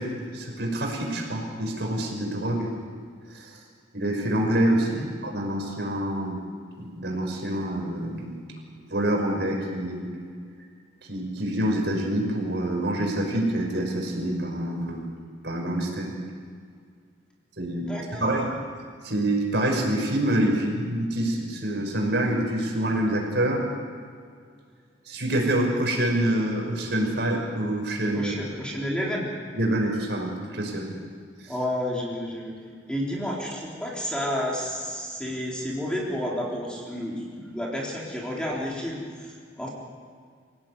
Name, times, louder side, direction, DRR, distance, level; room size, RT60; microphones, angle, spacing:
voice 1, 0.0-2.7 3.3-3.6 3.9-4.9 5.2-6.4 6.8-8.4 8.9-10.0 11.1-15.0 15.4-16.1 17.6-17.9 18.2-18.6 19.0-23.6 25.1-28.6 29.6-30.9 31.4-31.5, right 1 dB, 60° right, 1 dB, 5.9 m, -26 dB
voice 2, 4.8-5.1 17.9-18.3 28.1-29.3 31.5-32.6 32.9-39.7, equal, 5° left, -4 dB, 3.8 m, -31 dB
27.5 x 17.5 x 9.7 m, 2.1 s
head